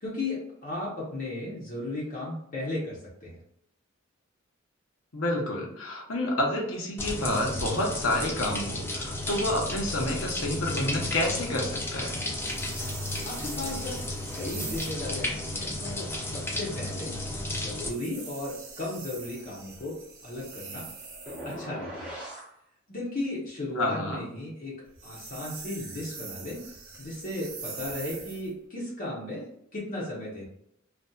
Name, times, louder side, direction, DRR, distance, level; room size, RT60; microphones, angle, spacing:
voice 1, 0.0-3.4 13.2-14.0 14.3-17.1 17.5-20.0 20.2-20.9 21.3-22.1 22.9-24.7 25.0-26.6 27.0-29.4 29.7-30.5, left 2 dB, 45° left, -5 dB, 0.7 m, -35 dB
voice 2, 5.1-12.1 23.8-24.2, left 1 dB, 90° left, 0 dB, 0.8 m, -29 dB
sound 1, 7.0-17.9, left 1 dB, 10° left, 0.4 m, -33 dB
sound 2, 12.4-15.1 17.8-21.6 24.8-28.5, right 4 dB, 90° right, 0.7 m, -43 dB
sound 3, 21.3-22.5, equal, 5° right, 0.8 m, -39 dB
2.6 x 2.3 x 2.2 m, 0.74 s
head